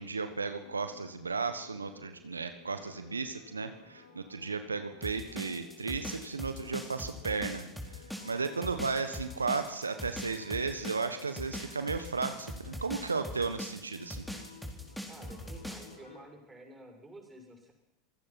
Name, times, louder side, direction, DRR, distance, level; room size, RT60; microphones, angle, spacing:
voice 1, 0.0-7.7 8.2-14.2, right 4 dB, 85° right, 9 dB, 1.3 m, -34 dB
sound 1, 0.6-16.3, left 4 dB, 80° left, 4.8 m, -56 dB
sound 2, 5.0-15.9, equal, ahead, 4.3 m, -41 dB
voice 2, 15.1-17.7, right 1 dB, 15° right, 2 dB, 7.1 m, -51 dB
27.0 x 17.5 x 6.0 m, 0.94 s
figure-of-eight pair, 85°, 0 cm